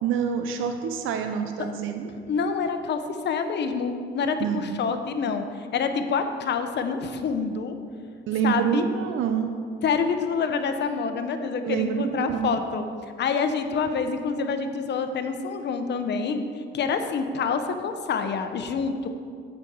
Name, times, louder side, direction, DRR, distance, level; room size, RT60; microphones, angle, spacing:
voice 1, 0.0-2.1 4.4-4.8 8.3-9.5 11.6-12.5, right 7 dB, 85° right, 7 dB, 0.6 m, -27 dB
voice 2, 2.3-7.8 8.4-8.8 9.8-12.9 13.2-16.4 16.7-19.1, left 5 dB, 60° left, 8 dB, 0.8 m, -27 dB
8.2 x 5.2 x 7.0 m, 2.2 s
cardioid pair, 90°, 20 cm